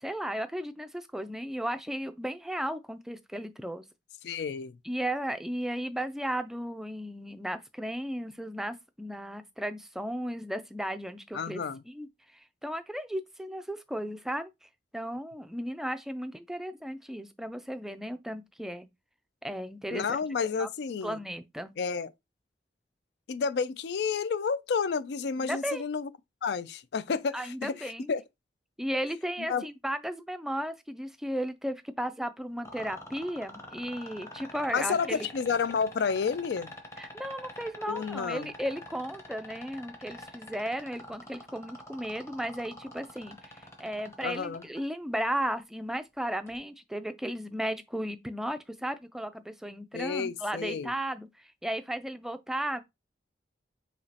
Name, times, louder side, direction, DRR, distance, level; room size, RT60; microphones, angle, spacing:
voice 1, 0.0-3.9 4.8-18.9 19.4-20.2 20.6-20.7 21.0-21.7 25.4-25.8 27.3-28.1 28.8-35.3 37.0-52.8, equal, ahead, 0.3 m, -35 dB
voice 2, 4.2-4.8 11.3-11.8 19.9-21.2 21.8-22.1 23.3-26.1 26.4-28.2 29.5-29.6 34.7-36.7 37.9-38.5 44.2-44.6 49.9-50.9, left 5 dB, 70° left, 0.4 m, -30 dB
sound 1, 32.6-44.8 46.5-46.6, left 1 dB, 15° left, 0.9 m, -45 dB
5.0 x 2.9 x 2.9 m
head